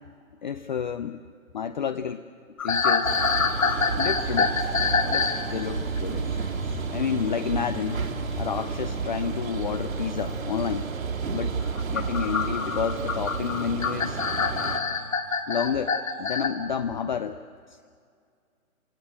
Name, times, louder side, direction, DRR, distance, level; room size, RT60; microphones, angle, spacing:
voice 1, 0.4-1.2 1.5-2.2 2.6-3.2 4.0-4.6 5.0-6.3 6.9-8.0 8.4-10.9 11.3-11.6 11.9-14.2 15.5-17.4, left 7 dB, 35° left, 10 dB, 0.6 m, -30 dB
sound 1, 2.6-5.4 5.7-6.0 8.2-8.4 9.7-9.8 11.7-16.5, left 5 dB, 70° left, 2.7 m, -26 dB
sound 2, 3.0-14.8, right 4 dB, 70° right, 3.0 m, -31 dB
28.0 x 20.0 x 8.1 m, 2.2 s
figure-of-eight pair, 145°, 42 cm